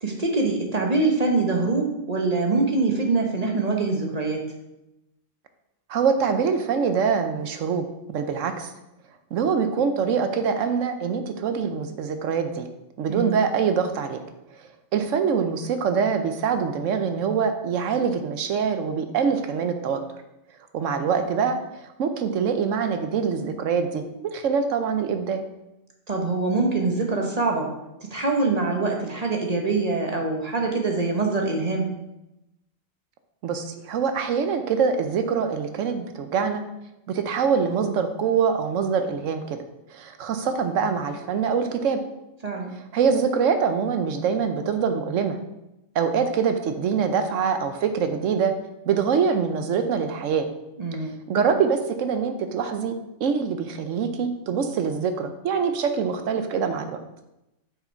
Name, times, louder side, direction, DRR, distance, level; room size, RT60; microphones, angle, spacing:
voice 1, 0.0-4.5 13.1-13.3 26.1-27.7 28.1-31.9 42.4-42.7 50.8-51.2, right 3 dB, 35° right, 1 dB, 1.0 m, -24 dB
voice 2, 5.9-8.7 9.3-12.7 13.0-14.2 14.6-20.0 20.7-25.4 33.4-36.6 37.1-39.6 39.9-42.0 42.9-45.4 45.9-48.5 48.9-50.5 50.9-52.9 53.2-57.0, right 6 dB, 75° right, 7 dB, 1.0 m, -24 dB
6.6 x 4.9 x 4.4 m, 0.91 s
omnidirectional pair, 1.4 m